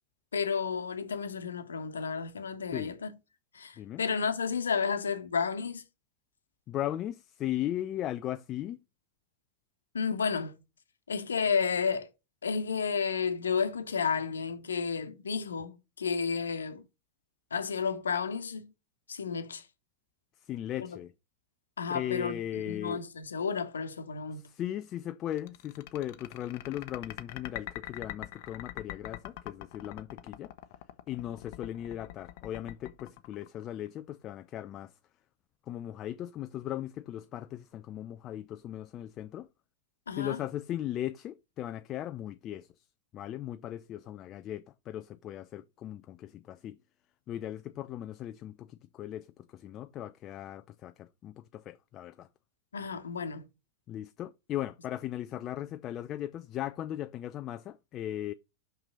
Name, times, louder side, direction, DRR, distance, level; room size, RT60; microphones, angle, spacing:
voice 1, 0.3-3.1 3.5-5.8 9.9-10.6 11.1-12.1 12.4-16.8 17.5-18.7 19.1-19.6 20.8-21.0 21.8-24.4 40.1-40.4 52.7-53.5, left 6 dB, 70° left, 1.2 m, -32 dB
voice 2, 6.7-8.8 20.4-21.1 21.9-23.0 24.3-30.5 31.1-34.9 35.7-39.5 40.1-42.9 43.1-46.8 47.3-52.3 53.9-58.3, left 12 dB, 30° left, 0.5 m, -38 dB
sound 1, 25.3-34.0, left 15 dB, 50° left, 0.8 m, -43 dB
6.1 x 5.9 x 5.2 m
figure-of-eight pair, 90°, 0 cm